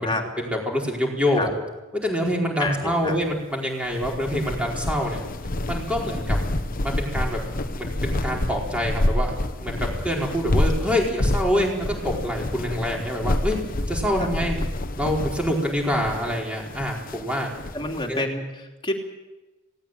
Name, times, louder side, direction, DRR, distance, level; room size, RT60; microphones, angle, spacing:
voice 1, 0.4-1.5 2.0-5.2 5.7-6.4 6.8-7.4 7.7-9.3 9.6-13.6 13.9-14.6 15.0-17.5 18.1-18.2, equal, 5° right, -1 dB, 4.7 m, -26 dB
voice 2, 2.6-3.2 14.2-14.3 17.7-19.0, left 2 dB, 25° left, 2 dB, 3.0 m, -28 dB
sound 1, 3.9-18.0, left 1 dB, 45° left, 1.1 m, -28 dB
18.5 x 18.0 x 9.2 m, 1.1 s
head